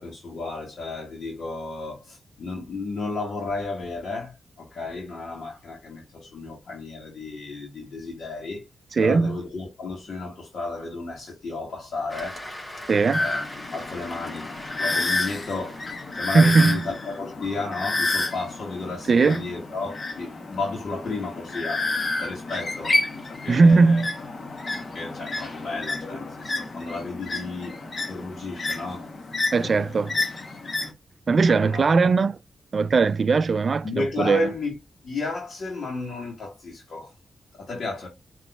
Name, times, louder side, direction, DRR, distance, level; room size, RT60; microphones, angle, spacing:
voice 1, 0.0-8.6 9.0-12.4 13.0-13.5 13.7-15.9 16.1-21.9 22.2-23.0 23.3-24.1 24.8-27.8 28.0-29.1 29.6-30.1 31.4-32.0 33.8-34.8 35.0-37.1 37.5-38.1, left 3 dB, 65° left, 1.6 m, -33 dB
voice 2, 8.9-9.4 12.9-13.2 16.3-16.8 19.1-19.5 23.5-24.1 29.5-30.1 31.3-32.4 32.7-34.5, right 4 dB, 55° right, 0.3 m, -19 dB
Cheering / Applause, 12.1-17.0, left 1 dB, 20° left, 3.2 m, -41 dB
sound 1, 13.1-30.9, left 2 dB, 45° left, 1.1 m, -30 dB
7.6 x 3.0 x 2.3 m
cardioid pair, 60°, 0 cm